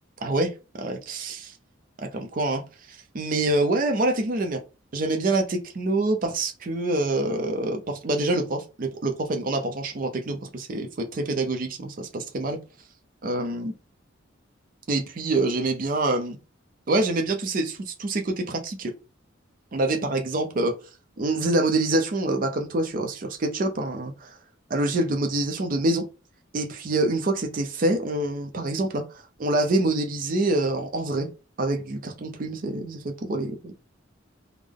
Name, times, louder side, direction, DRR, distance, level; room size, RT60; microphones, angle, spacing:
voice 1, 0.2-0.5 0.8-1.4 2.1-2.6 2.9-4.6 4.9-12.6 13.2-13.7 14.9-16.4 16.9-18.9 19.7-20.7 21.2-24.4 24.7-26.0 26.5-31.3 31.6-33.7, right 2 dB, 45° right, 0.5 m, -26 dB
3.5 x 2.0 x 3.4 m
head